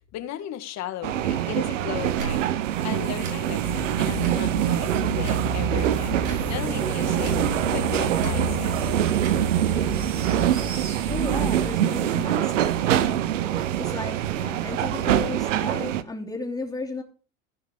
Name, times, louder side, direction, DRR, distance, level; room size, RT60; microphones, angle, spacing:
voice 1, 0.1-6.2 6.5-7.3 7.7-8.7, left 12 dB, 45° left, 8 dB, 2.0 m, -36 dB
sound 1, 1.0-16.0, right 12 dB, 85° right, 1.0 m, -25 dB
Tick / Tick-tock, 2.1-2.3 3.1-3.4 4.1-4.5 5.2-5.5 6.2-6.5 7.2-7.5 8.2-8.4 9.1-9.4, right 6 dB, 70° right, 6.1 m, -35 dB
sound 2, 3.6-11.7, right 1 dB, 35° right, 4.3 m, -31 dB
voice 2, 10.7-17.0, left 3 dB, 10° left, 1 dB, 3.0 m, -34 dB
16.0 x 5.7 x 5.2 m, 0.38 s
supercardioid pair, 110°, 37 cm